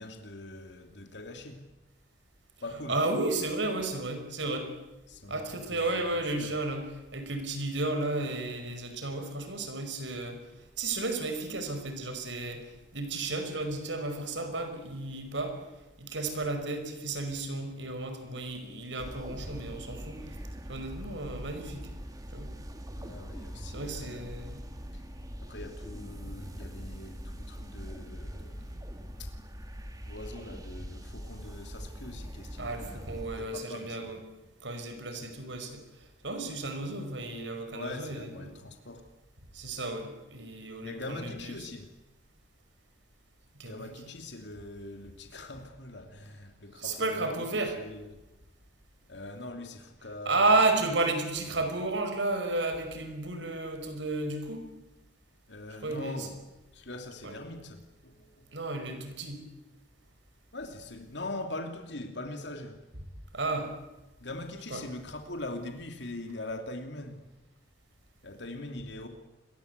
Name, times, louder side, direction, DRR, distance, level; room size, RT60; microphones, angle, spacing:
voice 1, 0.0-1.7 2.6-3.0 5.1-6.6 22.9-24.3 24.9-25.0 25.4-28.8 29.2-29.3 30.1-34.2 35.1-35.2 37.7-39.1 40.8-41.9 43.6-48.2 49.1-50.6 55.5-56.3 56.7-58.6 60.5-62.8 64.2-67.2 68.2-69.1, left 2 dB, 65° left, 5 dB, 2.9 m, -42 dB
voice 2, 2.9-4.7 5.3-15.7 16.0-20.3 20.7-21.9 22.3-22.5 23.7-24.6 32.6-34.2 34.6-35.8 36.2-38.5 39.5-41.5 43.6-43.9 46.8-47.8 50.3-54.6 55.8-56.3 57.2-57.3 58.5-59.4 63.3-63.7 64.7-64.8, right 2 dB, 75° right, 7 dB, 5.4 m, -32 dB
sound 1, 19.0-33.5, equal, 20° right, 2.3 m, -42 dB
29.0 x 22.5 x 8.2 m, 1.0 s
head